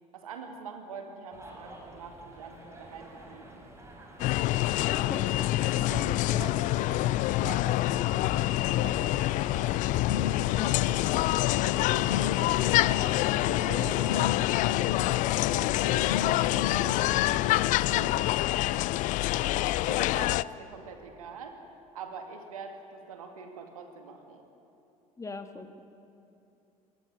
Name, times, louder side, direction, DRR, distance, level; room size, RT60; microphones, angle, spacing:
voice 1, 0.1-3.7 5.7-9.8 11.3-14.5 14.9-15.4 15.7-19.0 19.4-21.6 21.9-24.4, right 5 dB, 70° right, 5 dB, 2.3 m, -45 dB
sound 1, 1.3-17.6, right 1 dB, 15° right, 5.8 m, -49 dB
sound 2, 4.2-20.4, left 17 dB, 45° left, 0.4 m, -26 dB
voice 2, 4.9-6.1 10.5-10.8 25.2-25.8, left 3 dB, 15° left, 8 dB, 1.7 m, -41 dB
sound 3, 10.1-18.1, left 8 dB, 75° left, 0.7 m, -36 dB
23.0 x 17.5 x 9.4 m, 2.7 s
figure-of-eight pair, 60°, 18 cm